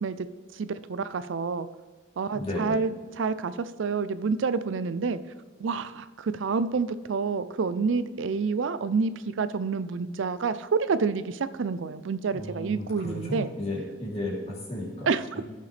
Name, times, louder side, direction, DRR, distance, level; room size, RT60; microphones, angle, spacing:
voice 1, 0.5-1.7 2.2-2.9 3.1-5.2 5.6-13.5 15.1-15.4, right 5 dB, 70° right, 14 dB, 0.4 m, -28 dB
voice 2, 2.3-2.8 12.3-15.4, left 1 dB, 30° left, -5 dB, 3.1 m, -34 dB
16.0 x 6.7 x 3.4 m, 1.5 s
head